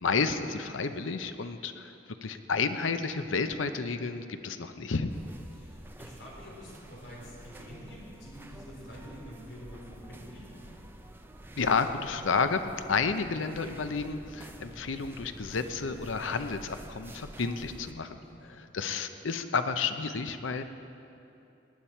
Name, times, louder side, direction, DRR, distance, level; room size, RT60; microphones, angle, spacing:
voice 1, 0.0-1.9 2.2-5.1 11.6-12.6 12.9-20.6, left 5 dB, 90° left, 9 dB, 0.7 m, -31 dB
sound 1, 5.1-17.9, right 1 dB, 10° right, 0.6 m, -48 dB
voice 2, 5.5-10.8 18.2-18.6, equal, 70° left, -4 dB, 3.8 m, -47 dB
18.5 x 10.0 x 4.4 m, 2.8 s
head